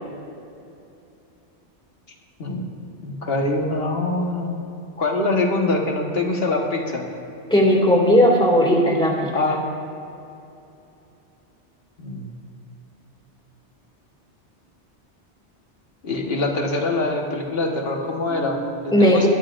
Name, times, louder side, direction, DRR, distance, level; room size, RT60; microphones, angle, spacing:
voice 1, 3.0-4.5 5.0-7.0 9.3-9.6 12.0-12.3 16.0-18.6 18.8-19.3, left 2 dB, 55° left, 1 dB, 1.6 m, -24 dB
voice 2, 7.5-9.3 18.3-19.3, equal, 5° left, -3 dB, 2.2 m, -17 dB
20.5 x 11.5 x 2.5 m, 2.7 s
omnidirectional pair, 1.2 m